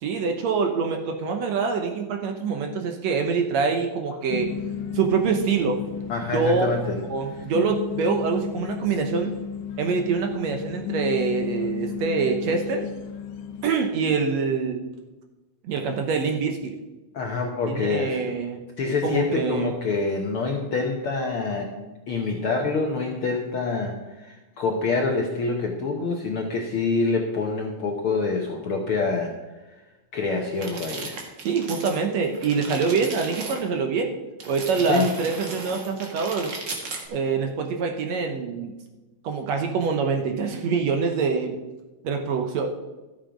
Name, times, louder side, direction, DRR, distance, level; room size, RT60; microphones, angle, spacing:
voice 1, 0.0-4.5 4.9-5.8 6.3-6.8 7.1-9.3 9.8-12.8 13.6-14.8 15.6-16.7 17.7-18.6 19.0-19.7 31.4-34.1 34.5-36.5 37.1-38.7 39.2-41.6 42.0-42.7, right 5 dB, 70° right, 4 dB, 1.9 m, -25 dB
sound 1, 4.3-13.7, left 8 dB, 85° left, 2.3 m, -33 dB
voice 2, 6.1-7.0 17.1-18.3 18.8-29.3 30.1-31.2 34.8-35.1, left 4 dB, 65° left, 1 dB, 1.3 m, -26 dB
sound 2, 30.5-33.6 34.4-37.1, right 3 dB, 45° right, 1.8 m, -36 dB
13.0 x 7.5 x 5.0 m, 1.1 s
omnidirectional pair, 3.6 m